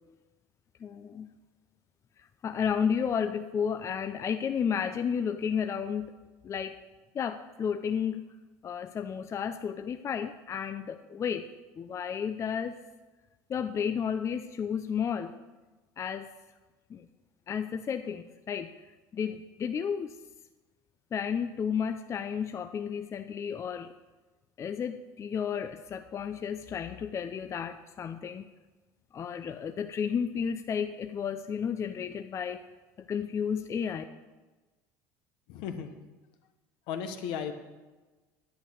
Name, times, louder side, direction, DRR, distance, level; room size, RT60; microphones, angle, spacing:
voice 1, 0.8-1.3 2.4-6.1 6.4-6.8 7.1-8.3 8.6-11.5 11.8-12.8 13.5-15.4 16.0-16.3 16.9-17.1 17.5-18.7 19.1-20.2 21.1-23.9 24.6-28.5 29.1-32.6 33.0-34.0, left 7 dB, 35° left, 9 dB, 0.5 m, -32 dB
voice 2, 35.5-35.9 36.9-37.5, left 7 dB, 70° left, 7 dB, 1.2 m, -35 dB
10.5 x 8.6 x 6.4 m, 1.2 s
supercardioid pair, 100°, 8 cm